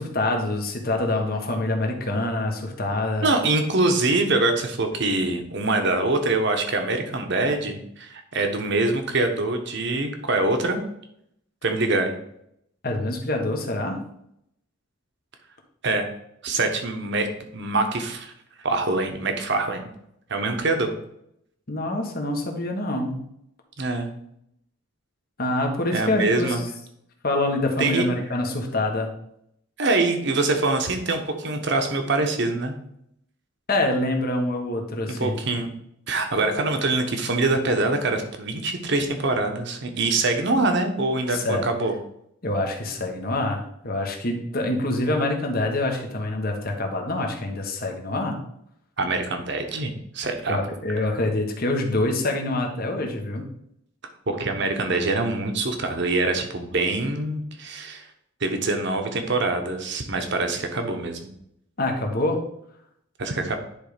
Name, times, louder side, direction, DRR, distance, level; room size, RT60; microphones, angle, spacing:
voice 1, 0.0-3.3 12.8-14.0 21.7-23.2 25.4-26.5 27.2-29.1 33.7-35.3 41.3-41.6 42.4-48.4 50.5-53.5 61.8-62.4, left 2 dB, 50° left, 2 dB, 1.4 m, -26 dB
voice 2, 3.2-10.8 11.6-12.1 15.8-16.1 16.4-17.3 17.5-18.3 18.6-19.9 20.3-20.9 23.8-24.1 25.9-26.6 27.8-28.1 29.8-32.7 35.2-35.7 36.1-42.0 49.0-50.6 54.3-58.1 58.4-61.3 63.2-63.6, right 2 dB, 60° right, 5 dB, 1.2 m, -24 dB
10.5 x 3.5 x 5.1 m, 0.75 s
head